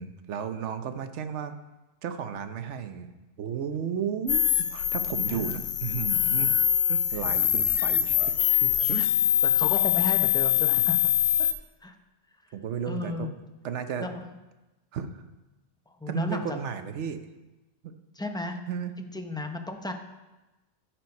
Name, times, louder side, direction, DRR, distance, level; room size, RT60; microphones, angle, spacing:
voice 1, 0.0-1.6 2.0-3.1 3.4-4.4 4.7-6.6 6.9-8.3 8.6-9.0 9.6-9.7 10.8-10.9 12.5-13.3 13.6-14.1 14.9-15.2 16.1-17.2 17.8-17.9 18.7-18.9, right 7 dB, 80° right, 9 dB, 1.0 m, -33 dB
sound 1, 4.3-11.5, left 10 dB, 75° left, 0.9 m, -24 dB
voice 2, 5.3-5.7 7.1-7.2 8.5-8.6 8.9-9.1 9.4-11.1 11.4-11.5 11.8-12.0 12.9-13.3 14.0-14.3 15.9-16.6 18.1-18.6 19.0-19.9, left 2 dB, 5° left, 5 dB, 0.5 m, -34 dB
13.5 x 4.5 x 5.3 m, 1.1 s
omnidirectional pair, 1.2 m